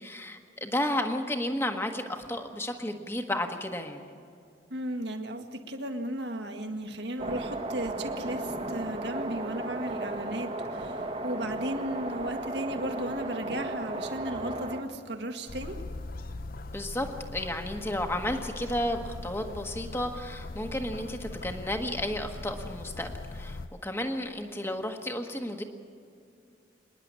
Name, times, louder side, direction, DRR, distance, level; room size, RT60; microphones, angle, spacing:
voice 1, 0.0-4.0 16.7-17.1 17.3-25.6, left 1 dB, 15° left, 4 dB, 1.5 m, -32 dB
voice 2, 4.7-15.8, right 1 dB, 65° right, 5 dB, 1.8 m, -35 dB
sound 1, 7.2-14.8, right 2 dB, 35° right, 1.5 m, -35 dB
sound 2, 15.5-23.7, left 2 dB, 50° left, 0.6 m, -40 dB
27.0 x 11.0 x 9.6 m, 2.4 s
head